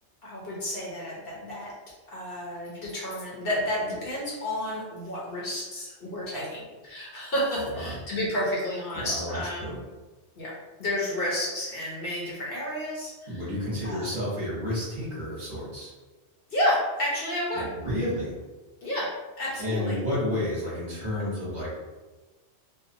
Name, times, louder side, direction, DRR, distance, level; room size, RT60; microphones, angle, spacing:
voice 1, 0.2-1.7 2.1-9.8 10.4-10.5 10.8-13.4 13.8-14.1 16.5-17.7 18.8-19.1 19.4-20.0, left 1 dB, 60° left, -6 dB, 0.9 m, -31 dB
voice 2, 7.6-8.0 8.9-9.8 13.3-15.9 17.5-18.4 19.6-21.8, left 1 dB, 40° right, -8 dB, 0.9 m, -31 dB
2.6 x 2.0 x 2.6 m, 1.2 s
omnidirectional pair, 1.2 m